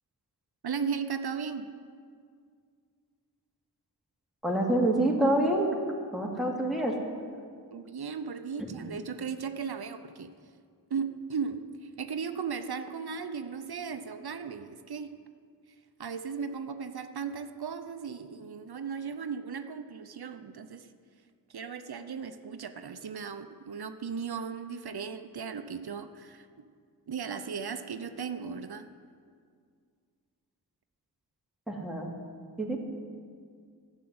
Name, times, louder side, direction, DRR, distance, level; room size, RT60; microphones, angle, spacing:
voice 1, 0.6-1.7 7.7-10.3 10.9-15.1 16.0-20.9 21.5-26.6 27.1-28.9, right 6 dB, 75° right, 9 dB, 0.8 m, -36 dB
voice 2, 4.4-5.7 6.1-7.0 8.6-8.9 31.7-32.1 32.6-32.8, right 1 dB, ahead, -2 dB, 2.6 m, -27 dB
12.5 x 7.4 x 9.5 m, 2.1 s
wide cardioid pair, 45°, 38 cm